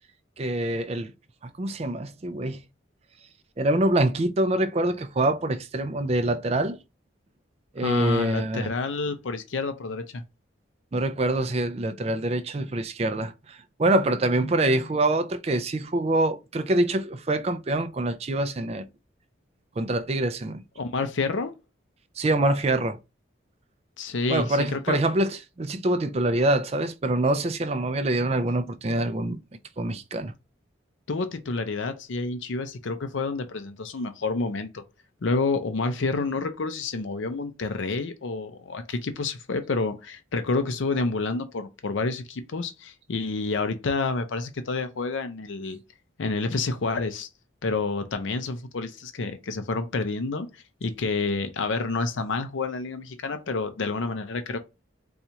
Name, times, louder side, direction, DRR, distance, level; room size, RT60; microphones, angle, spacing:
voice 1, 0.4-1.1 1.4-2.6 3.6-6.8 7.8-8.7 10.9-18.8 19.8-20.6 22.2-23.0 24.3-29.4 29.8-30.3, right 1 dB, 30° right, 0.4 m, -25 dB
voice 2, 7.8-10.2 20.8-21.5 24.0-25.0 31.1-34.8 35.2-45.8 46.2-47.3 47.6-50.5 50.8-54.6, left 3 dB, 70° left, 0.5 m, -29 dB
4.3 x 2.3 x 2.7 m
head